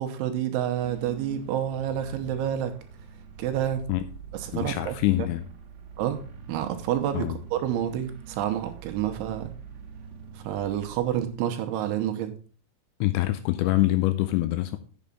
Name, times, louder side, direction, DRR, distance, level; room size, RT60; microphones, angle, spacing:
voice 1, 0.0-2.8 3.4-3.8 4.3-5.0 6.0-9.5 10.3-12.3, right 10 dB, 80° right, 3.1 m, -29 dB
sound 1, 0.8-11.4, right 7 dB, 60° right, 2.3 m, -44 dB
voice 2, 4.5-5.5 7.1-7.4 13.0-14.8, left 16 dB, 85° left, 2.6 m, -25 dB
8.4 x 7.0 x 5.3 m
omnidirectional pair, 5.7 m